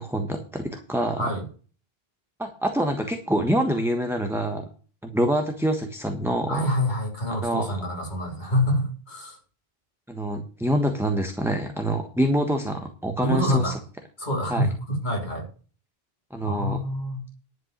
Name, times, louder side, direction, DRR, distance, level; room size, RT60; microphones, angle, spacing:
voice 1, 0.0-1.3 2.4-4.7 5.0-6.7 7.4-7.7 10.1-13.7 14.5-14.7 16.3-16.8, right 1 dB, ahead, 4 dB, 1.3 m, -26 dB
voice 2, 6.5-9.4 13.2-13.8 14.2-15.5 16.4-17.3, left 1 dB, 45° left, 0 dB, 3.8 m, -26 dB
11.0 x 5.6 x 8.1 m, 0.39 s
omnidirectional pair, 1.1 m